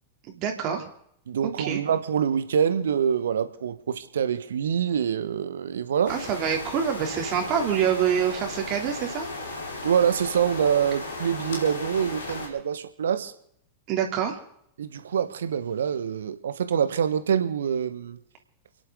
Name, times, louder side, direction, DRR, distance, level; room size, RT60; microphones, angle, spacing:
voice 1, 0.3-0.8 1.6-1.8 6.1-9.3 13.9-14.4, right 8 dB, 40° right, 2 dB, 3.1 m, -26 dB
voice 2, 1.3-6.1 9.8-13.3 14.8-18.2, right 8 dB, 70° right, 11 dB, 1.4 m, -25 dB
sound 1, 6.1-12.5, left 2 dB, 70° left, 4.9 m, -36 dB
30.0 x 11.0 x 3.9 m, 0.70 s
figure-of-eight pair, 95°, 0 cm